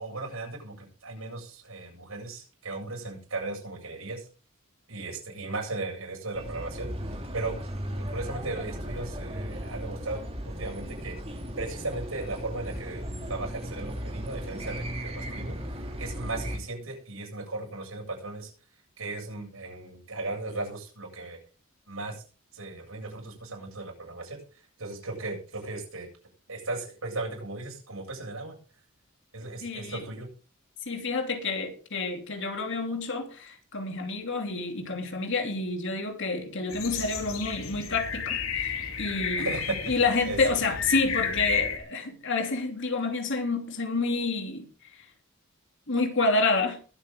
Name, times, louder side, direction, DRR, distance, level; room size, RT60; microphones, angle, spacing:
voice 1, 0.0-4.2 4.9-6.9 7.3-7.6 8.0-11.2 11.6-13.0 13.3-15.6 16.0-18.5 19.0-21.4 21.9-22.2 22.5-24.4 24.8-26.1 26.5-28.6 29.3-30.3 39.4-39.8 40.3-40.4, right 2 dB, 90° right, 7.9 m, -36 dB
sound 1, 6.3-16.6, equal, 30° right, 2.9 m, -36 dB
voice 2, 29.6-30.1 30.9-39.6 39.8-44.7 45.9-46.8, left 3 dB, 60° left, 2.9 m, -29 dB
sound 2, 36.7-41.8, left 6 dB, 90° left, 3.1 m, -32 dB
22.0 x 8.6 x 3.7 m
head